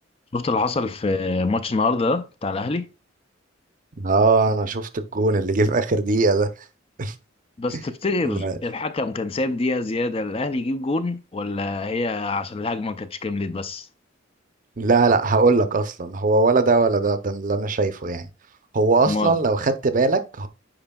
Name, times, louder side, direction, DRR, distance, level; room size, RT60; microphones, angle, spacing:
voice 1, 0.3-2.9 7.6-13.9 19.1-19.4, left 3 dB, 30° left, 0.4 m, -25 dB
voice 2, 4.0-6.5 7.0-7.1 8.2-8.6 14.8-18.3 18.7-20.5, right 3 dB, 45° right, 0.6 m, -20 dB
8.8 x 4.9 x 2.3 m
head